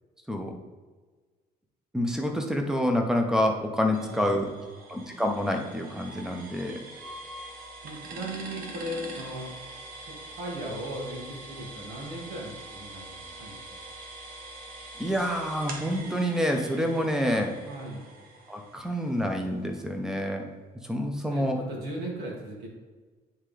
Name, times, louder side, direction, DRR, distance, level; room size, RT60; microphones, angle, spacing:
voice 1, 1.9-4.5 4.9-6.8 15.0-17.5 18.5-20.4 20.9-21.6, equal, 5° right, 3 dB, 0.9 m, -27 dB
sound 1, 3.9-19.6, right 2 dB, 60° right, 1.2 m, -44 dB
voice 2, 4.0-4.6 7.8-9.5 10.1-13.9 17.7-18.1 21.3-22.7, right 1 dB, 75° right, -2 dB, 2.0 m, -38 dB
9.7 x 3.7 x 3.3 m, 1.4 s
cardioid pair, 110°, 17 cm